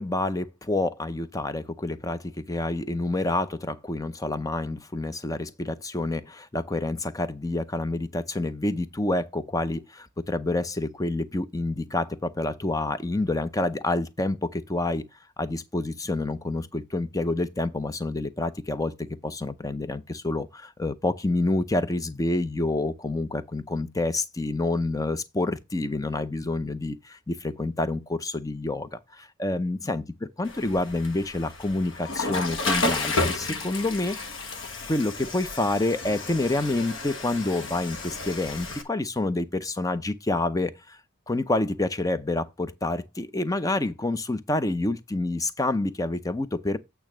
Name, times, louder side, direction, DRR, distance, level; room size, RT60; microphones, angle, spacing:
voice 1, 0.0-15.0 15.4-30.0 30.4-34.2 34.9-41.0 41.3-46.8, left 2 dB, 15° left, 0.6 m, -28 dB
Water / Toilet flush, 30.5-38.8, left 2 dB, 70° left, 1.4 m, -31 dB
8.7 x 3.4 x 6.1 m
head